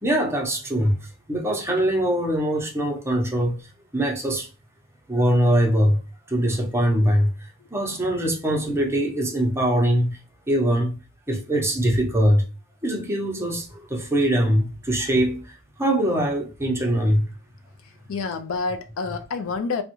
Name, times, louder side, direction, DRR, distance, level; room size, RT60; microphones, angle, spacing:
voice 1, 0.0-3.7 3.9-4.5 5.1-6.0 6.3-7.3 7.7-10.2 10.5-11.0 11.3-12.5 12.8-17.2, right 1 dB, 10° right, 0.6 m, -22 dB
voice 2, 17.8-19.8, left 4 dB, 65° left, 0.4 m, -28 dB
3.5 x 2.1 x 2.9 m
head